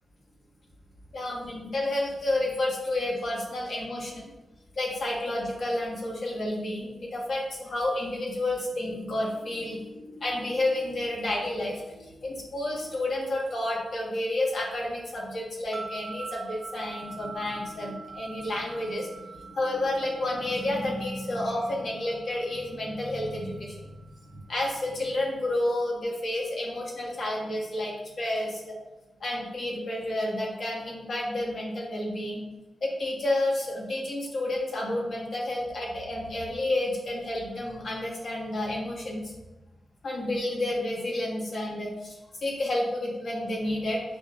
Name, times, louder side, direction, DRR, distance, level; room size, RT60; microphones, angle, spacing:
voice 1, 1.1-4.2 4.7-24.1 24.5-28.7 29.2-32.4 32.8-39.3 40.0-44.0, left 1 dB, 65° left, -3 dB, 1.4 m, -30 dB
sound 1, 15.7-25.0, right 4 dB, 45° right, 0.8 m, -45 dB
7.1 x 2.7 x 2.5 m, 1.1 s
cardioid pair, 50°, 0 cm